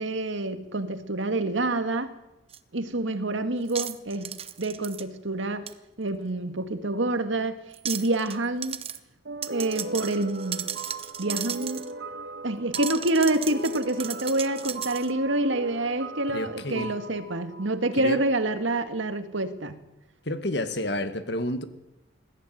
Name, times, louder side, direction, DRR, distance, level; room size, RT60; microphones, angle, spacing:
voice 1, 0.0-2.1 2.7-5.7 6.0-7.6 7.8-8.8 9.5-10.8 11.2-11.8 12.4-19.8, right 2 dB, 75° right, 9 dB, 1.9 m, -27 dB
sound 1, 2.5-2.6 3.7-5.0 5.7-5.8 7.7-8.4 8.6-9.0 9.4-11.9 12.7-15.1, right 9 dB, 30° right, 0.9 m, -35 dB
sound 2, 9.2-18.5, right 3 dB, 60° right, 1.5 m, -40 dB
voice 2, 16.3-16.9 18.0-18.2 20.3-21.6, left 1 dB, 60° left, 10 dB, 1.9 m, -30 dB
21.0 x 15.0 x 9.4 m, 0.96 s
head